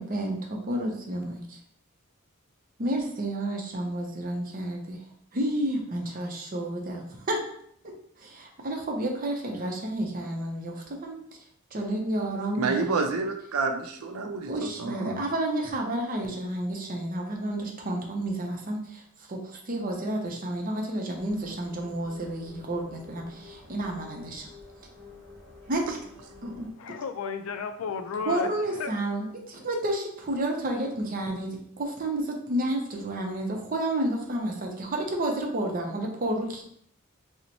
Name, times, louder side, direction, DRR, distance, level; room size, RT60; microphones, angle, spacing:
voice 1, 0.0-1.6 2.8-5.0 5.3-7.4 7.8-7.9 8.2-11.2 11.7-12.9 14.5-19.0 19.3-24.5 25.7-26.0 26.4-26.7 28.2-36.6, right 1 dB, 40° right, 1 dB, 0.6 m, -31 dB
voice 2, 12.6-15.2, right 4 dB, 85° right, 5 dB, 0.5 m, -29 dB
sound 1, 21.1-26.7, left 3 dB, 10° left, 0.8 m, -49 dB
voice 3, 26.8-28.9, left 5 dB, 75° left, 9 dB, 0.3 m, -33 dB
3.0 x 2.1 x 3.9 m, 0.69 s
head